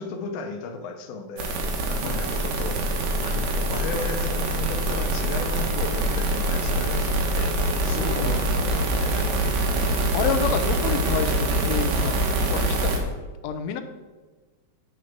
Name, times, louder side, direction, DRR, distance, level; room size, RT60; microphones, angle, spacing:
voice 1, 0.0-1.6 1.9-2.8 3.2-9.3, left 4 dB, 70° left, 5 dB, 2.1 m, -35 dB
sound 1, 1.4-13.0, right 1 dB, 75° right, 2.7 m, -24 dB
voice 2, 9.7-13.0 13.4-13.8, left 7 dB, 90° left, 7 dB, 1.5 m, -29 dB
7.8 x 5.1 x 5.8 m, 1.3 s
omnidirectional pair, 3.9 m